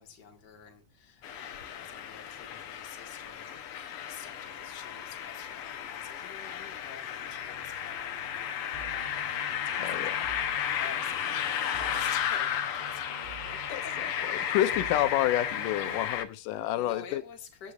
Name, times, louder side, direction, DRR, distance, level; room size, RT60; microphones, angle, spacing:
voice 1, 0.0-14.2 14.6-14.8 16.7-17.7, left 6 dB, 35° left, 2.3 m, -49 dB
sound 1, 1.2-16.2, left 9 dB, 65° left, 1.5 m, -34 dB
sound 2, 4.3-16.0, right 6 dB, 65° right, 0.6 m, -50 dB
voice 2, 9.8-10.3 13.7-13.8 14.5-17.2, left 13 dB, 85° left, 2.4 m, -28 dB
19.0 x 8.3 x 2.5 m
omnidirectional pair, 3.7 m